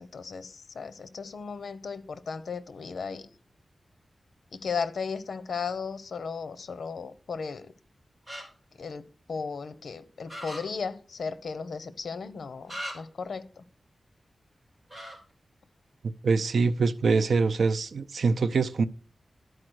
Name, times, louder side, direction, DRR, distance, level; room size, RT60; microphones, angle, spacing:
voice 1, 0.0-3.3 4.5-7.7 8.8-13.6, left 5 dB, 80° left, 0.8 m, -36 dB
sound 1, 8.3-8.4 10.3-10.6 12.7-12.9 14.9-15.1, equal, 15° right, 3.9 m, -37 dB
voice 2, 16.2-18.8, right 4 dB, 80° right, 0.6 m, -24 dB
11.5 x 4.7 x 6.3 m
wide cardioid pair, 110°, 0 cm